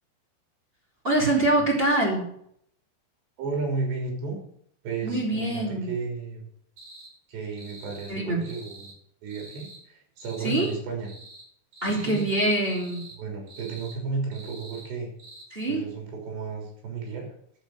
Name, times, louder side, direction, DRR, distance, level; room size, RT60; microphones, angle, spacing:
voice 1, 1.0-2.3 5.0-5.9 8.1-8.4 10.4-10.7 11.8-13.1 15.5-15.9, right 2 dB, 15° right, -3 dB, 3.3 m, -24 dB
voice 2, 3.4-4.4 4.8-6.5 7.3-8.9 9.2-11.1 11.9-12.2 13.2-15.1 15.7-17.3, right 4 dB, 70° right, 1 dB, 5.7 m, -33 dB
sound 1, 6.8-7.1 7.5-8.1 8.4-9.0 9.3-9.8 10.2-10.8 11.0-11.5 11.7-12.3 12.6-13.2 13.5-14.0 14.3-14.9 15.2-15.4, right 3 dB, 40° right, 5.0 m, -46 dB
10.5 x 7.2 x 8.0 m, 0.68 s
omnidirectional pair, 5.3 m